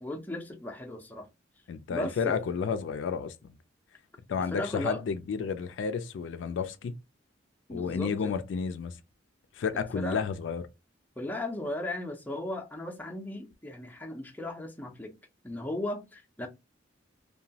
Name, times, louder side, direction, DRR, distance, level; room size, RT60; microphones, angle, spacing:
voice 1, 0.0-1.3 1.9-2.4 4.5-5.0 7.7-8.3 9.7-10.2 11.2-15.1 15.4-16.5, left 1 dB, 10° left, 0.5 m, -36 dB
voice 2, 1.7-3.5 4.3-7.0 7.7-9.0 9.6-10.6, left 6 dB, 70° left, 0.3 m, -31 dB
2.9 x 2.2 x 2.7 m
head